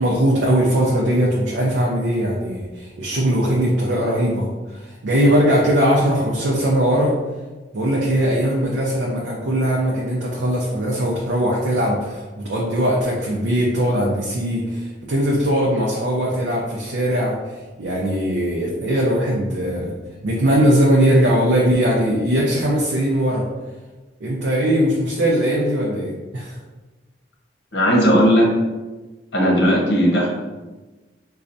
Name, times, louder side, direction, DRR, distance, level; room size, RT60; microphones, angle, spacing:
voice 1, 0.0-7.1 7.7-19.9 20.2-23.5 24.2-26.6, equal, 85° right, -3 dB, 0.5 m, -20 dB
voice 2, 27.7-28.5 29.3-30.3, equal, 70° left, -2 dB, 0.9 m, -16 dB
4.1 x 2.3 x 2.6 m, 1.2 s
head